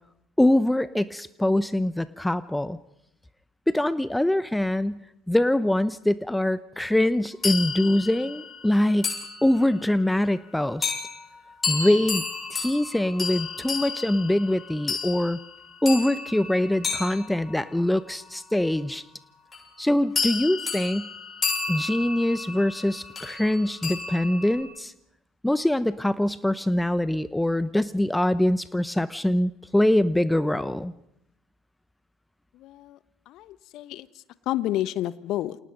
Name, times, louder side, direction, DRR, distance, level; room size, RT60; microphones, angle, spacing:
voice 1, 0.4-2.8 3.7-5.0 5.3-9.1 9.4-10.9 11.7-12.2 12.5-15.4 15.8-19.0 19.8-21.1 21.7-24.9 25.4-30.9, left 1 dB, 5° left, 16 dB, 0.8 m, -23 dB
sound 1, 7.4-9.9 10.8-11.1 11.6-18.0 19.5-19.8 20.2-24.6, left 4 dB, 25° left, 7.1 m, -32 dB
voice 2, 32.5-33.0 33.3-34.1 34.5-35.6, left 14 dB, 55° left, 17 dB, 1.1 m, -30 dB
29.0 x 27.0 x 5.4 m, 0.80 s
figure-of-eight pair, 60°, 0 cm